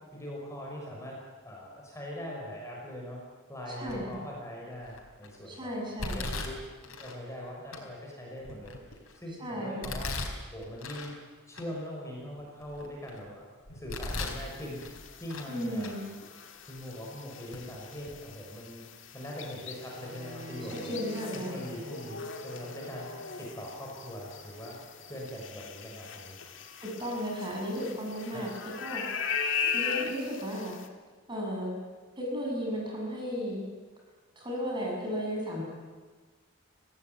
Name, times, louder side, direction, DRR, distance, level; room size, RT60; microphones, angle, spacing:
voice 1, 0.1-1.2 1.4-3.2 3.5-5.7 6.1-10.1 10.5-11.1 11.5-13.5 13.7-14.8 15.2-15.9 16.7-18.8 19.1-21.0 21.3-23.1 23.4-24.8 25.1-26.3 28.3-28.4, equal, 15° left, -2 dB, 5.8 m, -41 dB
voice 2, 3.8-4.2 5.5-6.2 9.4-9.9 15.5-16.1 20.8-21.6 26.8-28.5 28.8-29.3 29.7-30.7 31.3-31.7 32.2-33.6 34.4-35.6, equal, 20° right, -1 dB, 7.4 m, -34 dB
Domestic sounds home sounds, 3.9-4.3 4.8-5.3 6.0-7.2 7.7-7.8 8.4-9.2 9.8-11.1 11.5-11.6 12.2-13.2 13.7-14.4 14.8-15.5 15.8-15.9 16.8-16.9 17.5-17.6 18.0-18.2, left 2 dB, 80° left, 4.4 m, -38 dB
sound 1, 14.1-30.9, left 6 dB, 60° left, 2.1 m, -39 dB
Bowed string instrument, 20.0-26.0, right 1 dB, 60° right, 5.3 m, -49 dB
25.5 x 17.5 x 9.5 m, 1.4 s
head